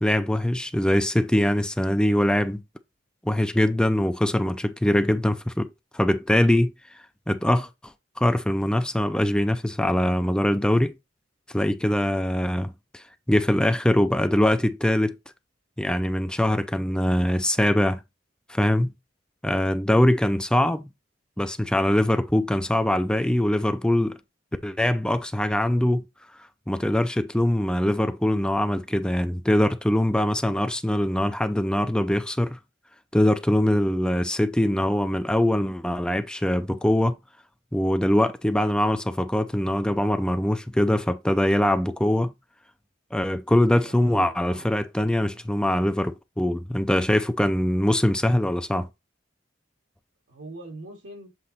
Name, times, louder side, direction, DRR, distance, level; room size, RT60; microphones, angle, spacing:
voice 1, 0.0-2.6 3.2-6.7 7.3-7.7 8.2-10.9 11.5-15.1 15.8-18.0 18.5-18.9 19.4-20.9 21.4-24.2 24.6-26.1 26.7-32.6 33.1-37.2 37.7-42.3 43.1-48.9, left 1 dB, 5° left, 0.5 m, -23 dB
voice 2, 43.6-44.7 45.1-45.6 50.3-51.3, right 2 dB, 85° right, 2.3 m, -43 dB
7.7 x 3.0 x 4.1 m
head